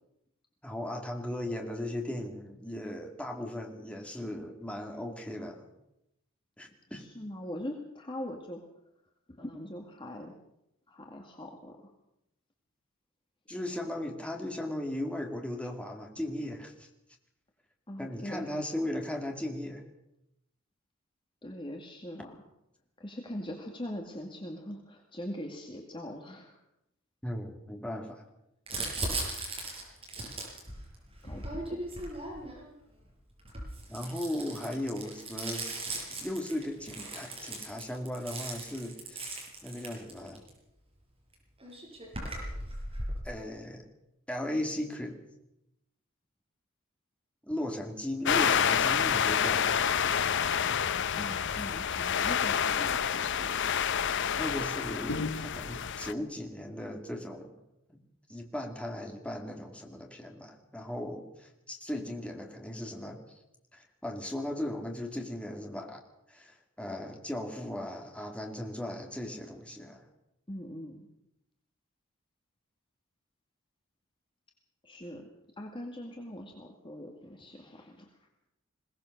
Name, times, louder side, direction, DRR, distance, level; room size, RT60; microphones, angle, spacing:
voice 1, 0.6-5.6 6.6-7.1 13.5-16.9 18.0-19.8 27.2-28.2 33.9-35.7 36.2-39.4 39.6-40.4 43.2-43.9 44.3-45.2 47.4-50.3 54.3-57.5 57.9-58.0 58.3-63.2 63.7-66.0 66.3-70.0, left 1 dB, 5° left, 2 dB, 2.5 m, -37 dB
voice 2, 6.9-8.6 9.4-10.3 10.9-11.9 17.9-18.6 21.4-22.4 23.0-26.6 31.2-31.8 51.2-53.7 70.5-71.1 74.8-75.3 75.6-78.3, left 1 dB, 25° left, 2 dB, 2.1 m, -42 dB
Crumpling crinkling, 28.7-32.7 33.4-40.5 41.3-41.4 41.6-43.2, right 2 dB, 30° right, 6.6 m, -38 dB
sound 1, 48.2-56.1, left 8 dB, 60° left, 0.7 m, -28 dB
21.5 x 18.0 x 6.6 m, 0.84 s
head